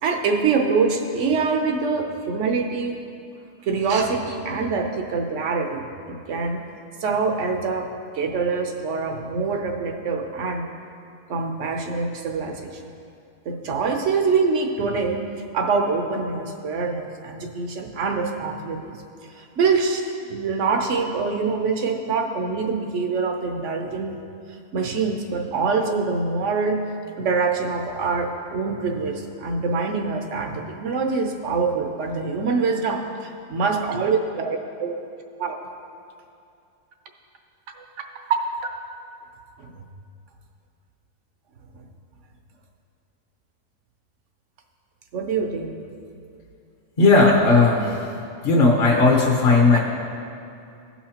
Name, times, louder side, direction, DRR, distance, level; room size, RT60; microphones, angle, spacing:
voice 1, 0.0-3.0 3.6-6.6 7.0-7.9 8.1-10.6 11.3-12.8 13.4-15.2 15.5-19.0 19.3-24.2 24.7-26.8 27.2-34.9 35.4-35.6 37.8-37.9 38.4-38.5 39.6-39.7 45.1-45.7 49.7-49.8, right 4 dB, 60° right, 4 dB, 1.0 m, -25 dB
voice 2, 47.0-48.1 48.4-49.8, left 3 dB, 40° left, -3 dB, 1.0 m, -16 dB
17.0 x 5.7 x 2.9 m, 2.5 s
omnidirectional pair, 1.6 m